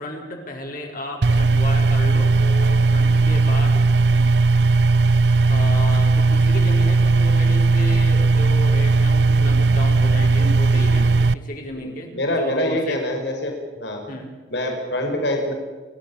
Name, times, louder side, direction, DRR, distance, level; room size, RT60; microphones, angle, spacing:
voice 1, 0.0-3.9 5.5-13.0 14.1-14.3, left 1 dB, 50° left, 0 dB, 5.0 m, -33 dB
sound 1, 1.2-11.3, right 3 dB, 70° right, 0.6 m, -17 dB
voice 2, 12.1-13.5 13.8-14.0 14.5-15.5, left 1 dB, 80° left, 3 dB, 5.3 m, -24 dB
29.5 x 14.0 x 8.7 m, 1.4 s
head